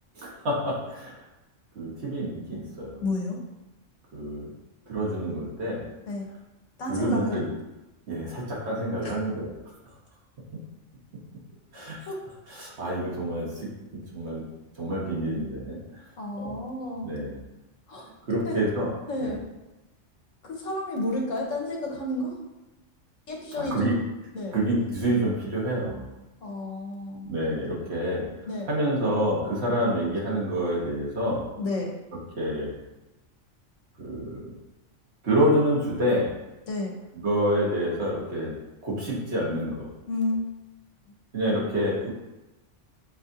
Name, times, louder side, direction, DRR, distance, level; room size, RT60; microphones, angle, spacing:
voice 1, 0.2-1.1 1.7-3.0 4.1-4.5 4.9-5.8 6.9-7.5 8.1-9.5 11.7-12.1 12.5-13.7 14.1-14.4 14.8-15.8 16.4-16.6 17.0-17.4 18.3-18.9 19.2-19.4 23.6-23.9 24.5-26.1 27.2-28.2 28.7-31.4 32.4-32.8 34.0-34.5 35.2-36.3 37.2-38.5 38.8-39.9 41.3-42.1, right 1 dB, 60° right, -5 dB, 1.5 m, -27 dB
voice 2, 3.0-3.4 6.1-6.3 6.8-7.4 9.0-9.1 12.1-12.2 16.2-17.1 17.9-18.6 19.1-19.4 20.4-22.4 23.3-24.0 24.3-24.6 26.4-27.3 28.5-28.7 31.6-31.9 36.7-36.9 40.1-40.4, left 2 dB, 85° left, -1 dB, 1.2 m, -31 dB
6.9 x 2.5 x 2.7 m, 1.0 s
omnidirectional pair, 1.3 m